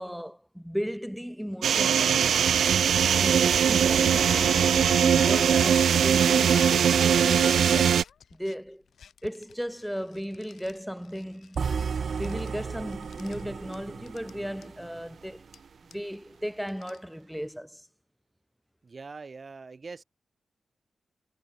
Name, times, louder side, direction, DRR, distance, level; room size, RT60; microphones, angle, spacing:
voice 1, 0.0-2.1 3.2-4.8 5.2-7.7 8.3-8.8 9.2-11.6 12.1-15.5 15.9-17.9, equal, ahead, 4.8 m, -36 dB
sound 1, 1.6-8.0, right 8 dB, 85° right, 0.7 m, -21 dB
sound 2, 3.8-8.5 9.0-10.8 11.0-11.8 12.1-13.4 13.7-13.8 14.1-14.3 14.6-14.7 15.5-15.6 15.9-16.1 16.7-17.0, left 7 dB, 80° left, 1.1 m, -40 dB
sound 3, 11.5-15.7, right 6 dB, 65° right, 1.8 m, -34 dB
voice 2, 18.8-20.0, right 4 dB, 45° right, 2.3 m, -42 dB
cardioid pair, 75°, 0 cm